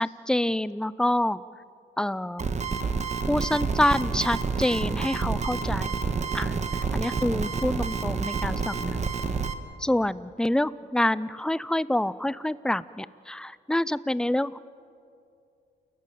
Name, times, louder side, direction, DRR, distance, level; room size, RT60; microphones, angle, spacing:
voice 1, 0.0-1.4 2.0-2.5 3.3-6.0 6.3-6.5 6.9-9.1 9.8-14.6, left 1 dB, 5° left, 18 dB, 0.5 m, -27 dB
sound 1, 2.4-9.5, right 5 dB, 35° right, 1.4 m, -28 dB
29.5 x 14.0 x 9.1 m, 2.4 s
cardioid pair, 90°, 20 cm